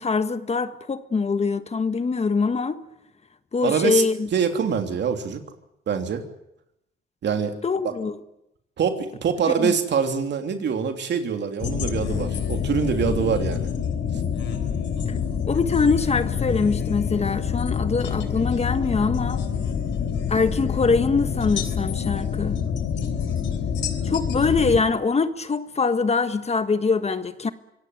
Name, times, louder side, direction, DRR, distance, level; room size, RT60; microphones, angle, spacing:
voice 1, 0.0-2.8 3.5-4.3 7.6-8.2 9.6-9.7 15.1-15.2 15.4-19.4 20.3-22.6 24.0-27.5, left 4 dB, 30° left, 11 dB, 1.5 m, -23 dB
voice 2, 3.6-4.0 4.3-5.4 5.9-6.3 7.2-7.6 7.8-7.9 8.8-13.7, right 6 dB, 60° right, 6 dB, 3.1 m, -24 dB
sound 1, 11.6-24.8, left 7 dB, 70° left, 3.5 m, -26 dB
25.5 x 17.5 x 9.3 m, 0.83 s
cardioid pair, 90°, 20 cm